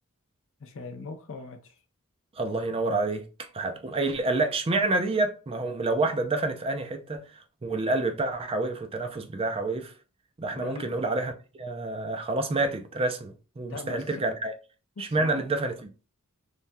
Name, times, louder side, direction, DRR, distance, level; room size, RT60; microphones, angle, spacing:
voice 1, 0.6-1.8 3.9-4.0 10.6-10.8 13.7-14.0 15.0-15.4, left 3 dB, 60° left, 0.6 m, -40 dB
voice 2, 2.3-9.9 10.4-11.3 11.6-14.5 15.0-15.9, right 2 dB, 25° right, 0.4 m, -28 dB
3.3 x 2.2 x 2.6 m
head